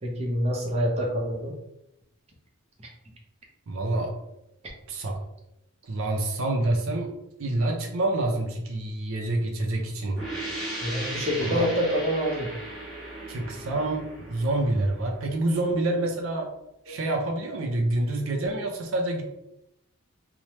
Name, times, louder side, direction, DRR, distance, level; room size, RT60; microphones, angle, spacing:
voice 1, 0.0-1.5 10.8-12.5 16.9-17.0, equal, 30° right, -1 dB, 0.6 m, -26 dB
voice 2, 3.7-4.2 4.9-5.2 5.8-7.1 7.4-10.2 11.4-11.7 13.3-16.5 16.9-19.2, right 2 dB, 75° right, 1 dB, 0.4 m, -27 dB
sound 1, 10.1-15.6, right 1 dB, ahead, 1.2 m, -37 dB
3.1 x 2.0 x 2.8 m, 0.85 s
head